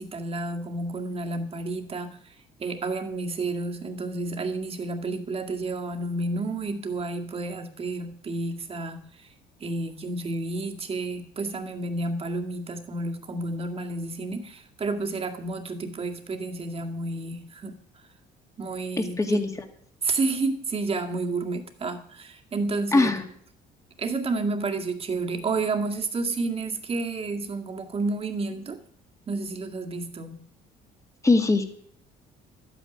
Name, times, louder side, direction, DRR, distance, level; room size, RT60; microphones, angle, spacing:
voice 1, 0.0-2.3 2.6-9.3 9.6-17.8 18.6-19.4 20.0-23.1 24.0-28.8 29.3-30.4, right 3 dB, 35° right, 4 dB, 2.1 m, -30 dB
voice 2, 19.2-19.5 22.9-23.3 31.2-31.6, left 3 dB, 20° left, 5 dB, 2.2 m, -20 dB
11.5 x 9.0 x 9.2 m, 0.63 s
cardioid pair, 110°, 17 cm